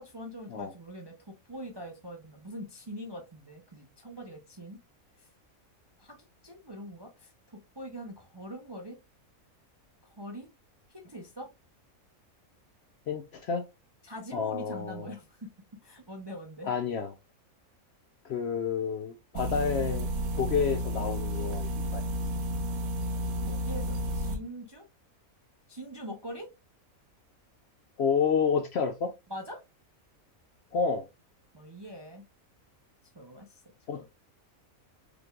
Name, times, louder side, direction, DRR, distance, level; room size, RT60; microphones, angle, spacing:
voice 1, 0.0-4.8 5.2-5.3 6.0-6.2 6.4-9.0 10.0-10.5 10.9-11.5 14.0-15.5 15.8-16.7 23.3-24.8 25.7-26.5 29.3-29.6 31.5-32.2 33.1-34.0, equal, 30° right, 0.5 m, -43 dB
voice 2, 13.1-13.6 14.3-15.1 16.6-17.1 18.2-20.1 20.3-22.0 28.0-29.1 30.7-31.0 33.9-34.0, left 6 dB, 65° left, 0.7 m, -29 dB
sound 1, 19.4-24.4, equal, 75° right, 1.3 m, -31 dB
5.0 x 3.2 x 2.3 m
omnidirectional pair, 1.5 m